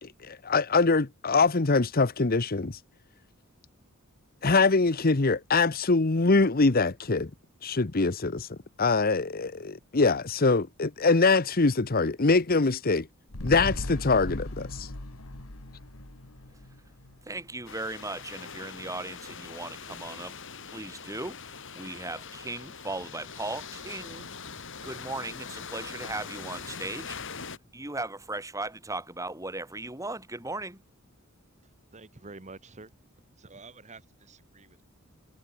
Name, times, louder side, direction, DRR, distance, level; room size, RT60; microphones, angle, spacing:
voice 1, 0.0-2.8 4.4-7.3 7.6-13.1 13.4-14.9, left 3 dB, 45° left, 1.0 m, -24 dB
sound 1, 13.3-17.8 18.1-18.2, left 1 dB, 80° left, 2.3 m, -38 dB
voice 2, 17.3-20.3 20.7-21.4 21.8-24.3 24.8-27.2 27.7-30.8, right 2 dB, 15° right, 5.2 m, -37 dB
sound 2, 17.7-27.6, left 5 dB, 60° left, 5.6 m, -42 dB
voice 3, 31.9-32.9 33.4-34.8, right 3 dB, 35° right, 1.8 m, -48 dB
head